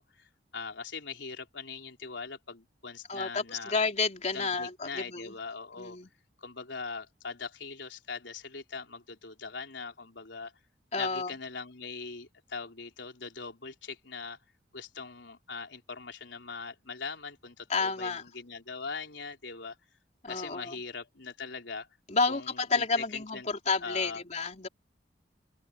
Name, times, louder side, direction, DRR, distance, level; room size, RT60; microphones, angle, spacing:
voice 1, 0.0-3.8 4.3-6.0 6.4-10.5 11.0-14.4 14.7-19.8 20.3-21.9 22.3-23.5 23.8-24.2, left 4 dB, 85° left, 3.8 m, -41 dB
voice 2, 3.1-5.3 5.8-6.1 10.9-11.3 17.7-18.2 20.2-20.8 22.1-24.7, left 4 dB, 40° left, 3.7 m, -30 dB
open air
head